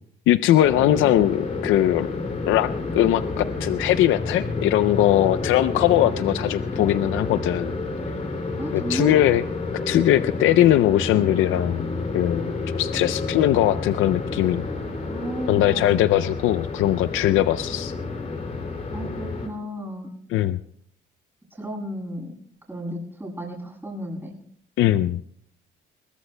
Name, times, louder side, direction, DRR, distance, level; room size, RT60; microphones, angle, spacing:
voice 1, 0.3-2.1 2.5-7.7 8.7-9.4 9.9-11.9 12.1-14.6 15.5-17.9 20.3-20.6 24.8-25.2, left 13 dB, 85° left, 12 dB, 0.4 m, -20 dB
sound 1, 0.6-19.5, left 3 dB, 35° left, 2.7 m, -30 dB
voice 2, 8.6-9.3 15.0-16.1 18.9-20.1 21.6-22.3 22.7-24.3, right 1 dB, 10° right, -2 dB, 7.4 m, -33 dB
22.0 x 20.5 x 2.2 m, 0.67 s
cardioid pair, 90°, 20 cm